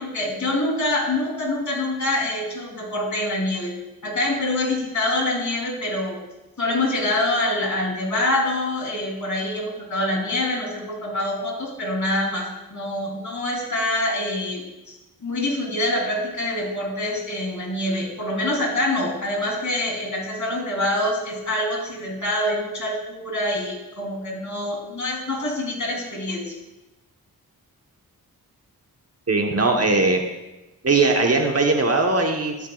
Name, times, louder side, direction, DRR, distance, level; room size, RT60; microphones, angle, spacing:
voice 1, 0.0-3.8 4.0-6.2 6.6-26.6, left 1 dB, 50° left, -2 dB, 3.6 m, -25 dB
voice 2, 29.3-30.2 30.8-32.7, right 3 dB, 40° right, 3 dB, 1.2 m, -20 dB
13.0 x 8.2 x 2.4 m, 1.0 s
cardioid pair, 50°, 37 cm